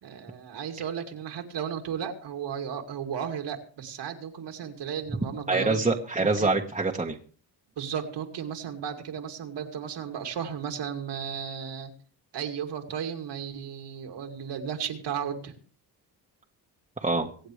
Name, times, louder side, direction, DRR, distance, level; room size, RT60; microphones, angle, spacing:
voice 1, 0.0-5.8 6.2-6.6 7.8-11.9 12.3-15.5, right 8 dB, 70° right, 4 dB, 2.5 m, -34 dB
voice 2, 5.5-7.2 17.0-17.3, right 3 dB, 15° right, 0 dB, 1.4 m, -25 dB
24.5 x 8.9 x 3.3 m, 0.42 s
cardioid pair, 100°, 43 cm